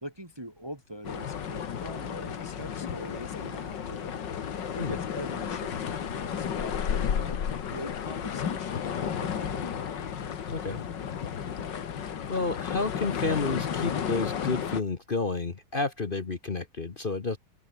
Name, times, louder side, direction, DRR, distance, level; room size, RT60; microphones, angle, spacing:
voice 1, 0.0-4.2 4.7-7.4 7.7-9.9, equal, 10° right, 2.1 m, -43 dB
sound 1, 1.0-14.8, left 8 dB, 60° left, 2.1 m, -33 dB
voice 2, 12.3-17.4, left 3 dB, 30° left, 1.1 m, -30 dB
open air
omnidirectional pair, 2.3 m